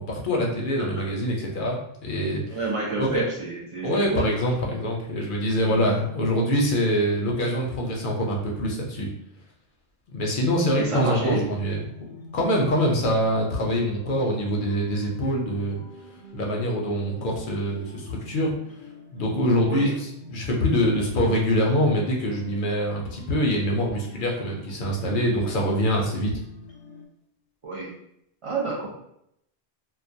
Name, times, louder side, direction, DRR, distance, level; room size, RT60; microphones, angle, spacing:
voice 1, 0.0-2.6 3.0-3.2 3.8-9.1 10.1-11.8 12.3-15.8 16.3-18.5 19.1-26.3, equal, 60° left, -1 dB, 0.6 m, -24 dB
voice 2, 2.5-4.3 5.6-5.9 10.8-11.4 19.7-19.9 27.6-27.9 28.4-28.9, right 3 dB, 45° right, -4 dB, 0.4 m, -29 dB
sound 1, 11.3-27.1, left 2 dB, 90° left, 0.8 m, -46 dB
2.2 x 2.2 x 2.5 m, 0.77 s
omnidirectional pair, 1.1 m